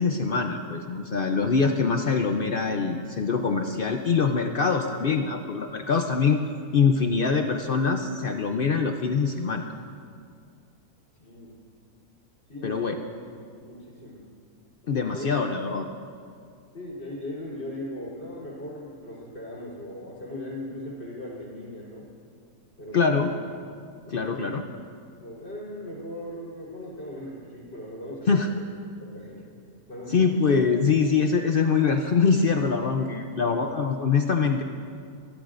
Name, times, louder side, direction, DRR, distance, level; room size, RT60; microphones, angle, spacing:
voice 1, 0.0-6.4 6.7-9.6 12.6-13.0 14.9-15.9 22.9-23.3 24.1-24.6 28.3-28.5 30.1-34.6, left 5 dB, 65° left, 4 dB, 0.5 m, -24 dB
voice 2, 11.2-11.5 12.5-13.0 13.5-14.3 15.1-15.3 16.7-22.1 22.8-23.3 24.1-24.5 25.2-29.5 29.9-30.3, left 1 dB, 40° left, -5 dB, 3.6 m, -39 dB
27.5 x 12.0 x 2.5 m, 2.3 s
omnidirectional pair, 1.7 m